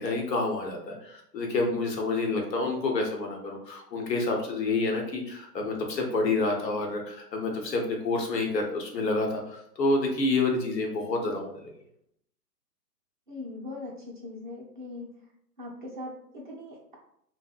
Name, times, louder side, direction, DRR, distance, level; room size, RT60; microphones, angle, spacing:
voice 1, 0.0-11.7, left 3 dB, 90° left, 1 dB, 0.9 m, -28 dB
voice 2, 13.3-15.1 15.6-16.9, left 2 dB, 35° right, -4 dB, 0.4 m, -40 dB
2.7 x 2.0 x 2.3 m, 0.71 s
hypercardioid pair, 140°, 49 cm